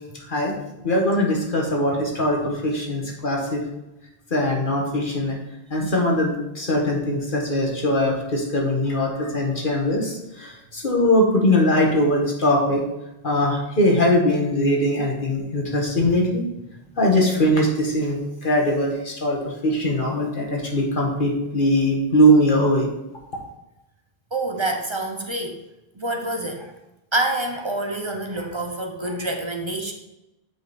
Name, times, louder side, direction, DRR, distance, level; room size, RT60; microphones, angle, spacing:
voice 1, 0.8-3.6 4.3-5.4 5.7-12.8 13.2-16.4 17.0-22.9, equal, 55° left, -1 dB, 1.7 m, -21 dB
voice 2, 24.3-25.6 26.0-26.7 27.1-29.9, right 2 dB, 30° right, 3 dB, 0.8 m, -27 dB
7.6 x 5.2 x 4.3 m, 0.94 s
omnidirectional pair, 1.0 m